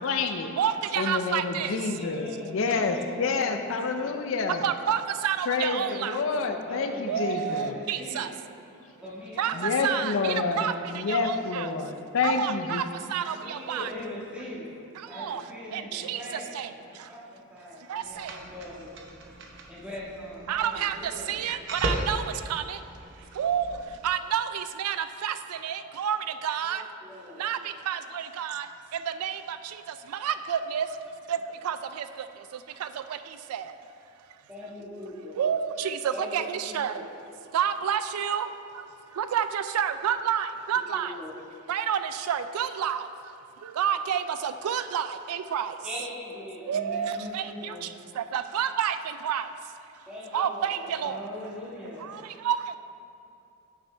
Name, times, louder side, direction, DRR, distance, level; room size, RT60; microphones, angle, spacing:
voice 1, 0.0-0.5 1.0-2.3 2.5-4.6 5.5-7.7 9.6-10.6 10.9-12.8, left 4 dB, 60° left, 6 dB, 0.4 m, -28 dB
voice 2, 0.6-1.7 4.6-6.2 7.1-8.3 9.4-9.5 9.8-10.7 11.1-11.7 12.2-12.8 13.1-13.9 15.2-15.4 15.7-16.2 16.5-16.7 17.9-18.3 20.5-22.2 22.5-22.8 23.4-23.8 24.0-25.0 25.2-25.3 25.6-26.2 26.4-26.8 27.4-27.6 27.9-28.7 29.2-29.6 30.2-30.9 31.3-31.4 31.6-32.0 32.8-32.9 33.5-33.6 35.4-37.0 37.5-38.5 39.2-41.1 41.7-42.0 42.3-43.0 43.8-45.7 46.7-47.9 48.2-49.0 49.2-49.4 50.3-51.2 52.4-52.8, right 8 dB, 90° right, 11 dB, 0.3 m, -29 dB
voice 3, 1.8-4.2 5.8-8.3 9.0-11.0 13.3-14.7 15.1-19.0 19.7-21.4 26.6-27.5 28.4-28.5 34.5-35.4 36.1-37.0 40.9-41.3 45.8-47.8 50.1-52.4, left 1 dB, 5° right, -7 dB, 1.5 m, -41 dB
sound 1, 18.0-24.1, right 1 dB, 55° right, 0.8 m, -37 dB
9.0 x 6.1 x 3.3 m, 2.7 s
head